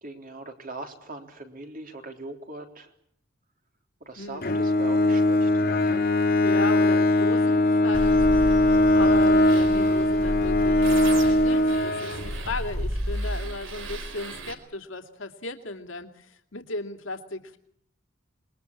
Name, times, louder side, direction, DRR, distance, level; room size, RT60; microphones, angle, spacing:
voice 1, 0.0-2.9 4.0-5.8 8.9-9.1, right 2 dB, 45° right, 4 dB, 3.7 m, -40 dB
voice 2, 4.2-4.5 6.4-17.6, left 2 dB, 70° left, 6 dB, 2.6 m, -35 dB
Bowed string instrument, 4.4-12.6, left 1 dB, 50° left, 2.3 m, -21 dB
sound 1, 7.9-14.5, right 1 dB, 70° right, 4.3 m, -33 dB
27.0 x 22.0 x 8.7 m, 0.69 s
head